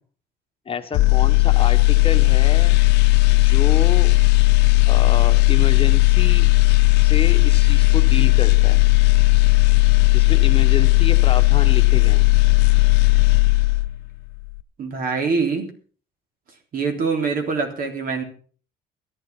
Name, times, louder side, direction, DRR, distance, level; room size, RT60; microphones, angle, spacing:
voice 1, 0.7-2.8 3.3-4.1 4.8-6.5 7.0-8.8 10.1-12.2, left 6 dB, 35° left, 8 dB, 1.3 m, -29 dB
sound 1, 0.9-14.1 14.4-14.6, left 24 dB, 85° left, 0.7 m, -15 dB
voice 2, 14.8-15.7 16.7-18.2, right 4 dB, 60° right, 5 dB, 3.6 m, -24 dB
13.5 x 11.5 x 6.0 m, 0.42 s
cardioid pair, 110°, 17 cm